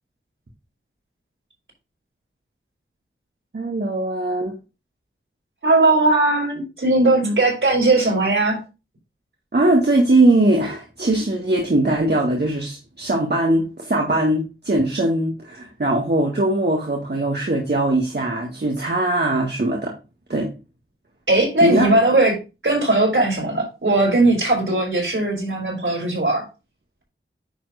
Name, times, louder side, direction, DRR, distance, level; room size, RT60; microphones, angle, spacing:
voice 1, 3.5-4.5 7.2-7.3 9.5-19.9 20.3-20.5 21.6-22.0, right 2 dB, 50° right, 0 dB, 2.0 m, -20 dB
voice 2, 5.6-8.6 21.3-22.3 22.6-26.5, right 2 dB, 70° right, -1 dB, 5.0 m, -18 dB
10.0 x 3.7 x 4.9 m, 0.29 s
wide cardioid pair, 45°, 21 cm